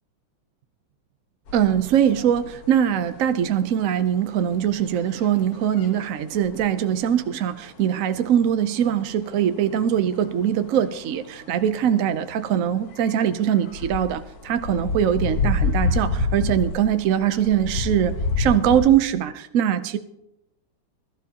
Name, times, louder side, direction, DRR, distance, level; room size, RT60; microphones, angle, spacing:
sound 1, 1.5-18.9, left 3 dB, 55° left, 1.4 m, -29 dB
voice 1, 1.5-20.0, right 9 dB, 75° right, 10 dB, 0.7 m, -22 dB
21.0 x 12.5 x 2.9 m, 0.83 s
omnidirectional pair, 2.2 m